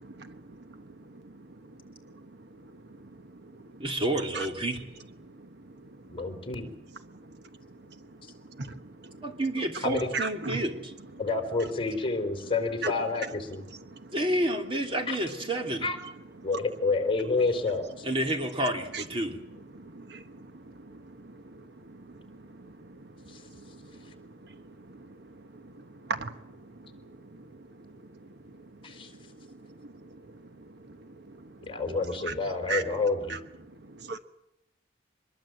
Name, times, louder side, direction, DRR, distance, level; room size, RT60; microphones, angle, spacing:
voice 1, 3.8-4.8 9.2-10.9 14.1-15.9 18.0-19.4 31.9-32.4, right 1 dB, 30° right, 3.0 m, -30 dB
voice 2, 6.1-6.7 9.8-10.1 11.2-13.6 15.1-15.2 15.8-16.0 16.4-18.1 23.3-23.4 28.8-29.1 31.7-33.4, left 3 dB, 30° left, 3.7 m, -29 dB
voice 3, 10.1-10.6 18.9-19.0 19.9-20.2 26.1-26.3 32.3-32.4 32.7-32.8 34.1-34.2, right 4 dB, 60° right, 1.2 m, -32 dB
24.5 x 21.5 x 7.8 m
head